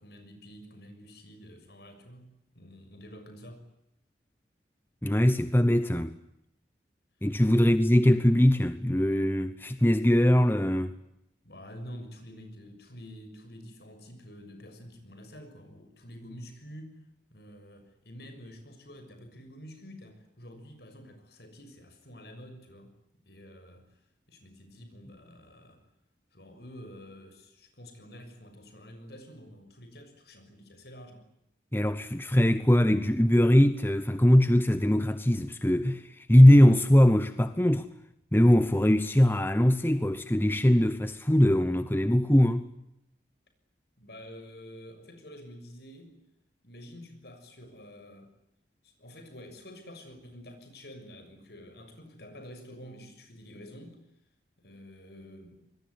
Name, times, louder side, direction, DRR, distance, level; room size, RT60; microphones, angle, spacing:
voice 1, 0.0-3.7 7.6-7.7 11.4-17.0 17.3-22.9 23.2-24.0 24.3-25.8 26.3-31.3 44.0-46.3 46.6-48.3 48.8-54.0 54.6-55.6, equal, 60° left, 6.6 m, -48 dB
voice 2, 5.0-6.2 7.2-10.9 31.7-37.9 38.3-42.7, left 1 dB, 10° left, 0.9 m, -21 dB
26.0 x 21.5 x 9.6 m
head